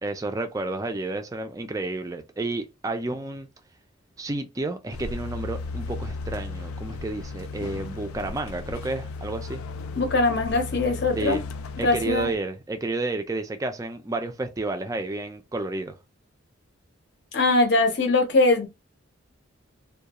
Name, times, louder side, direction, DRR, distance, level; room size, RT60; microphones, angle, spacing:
voice 1, 0.0-3.5 4.2-9.6 11.1-11.4 11.8-15.9, right 2 dB, 15° right, 0.3 m, -31 dB
sound 1, 4.9-12.3, left 3 dB, 90° left, 0.3 m, -35 dB
voice 2, 10.0-11.4 11.8-12.3 17.3-18.7, left 2 dB, 55° left, 0.6 m, -21 dB
2.3 x 2.2 x 2.8 m
head